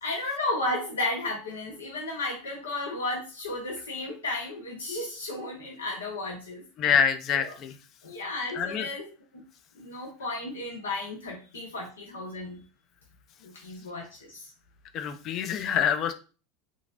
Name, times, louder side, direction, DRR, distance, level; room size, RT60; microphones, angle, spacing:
voice 1, 0.0-6.6 7.4-7.5 8.0-9.1 9.8-12.6 13.5-14.5, left 2 dB, 90° left, -1 dB, 0.6 m, -33 dB
voice 2, 6.8-7.7 8.5-8.9 14.9-16.1, left 7 dB, 45° left, 10 dB, 0.4 m, -26 dB
2.9 x 2.5 x 2.5 m, 0.35 s
hypercardioid pair, 85°, 0 cm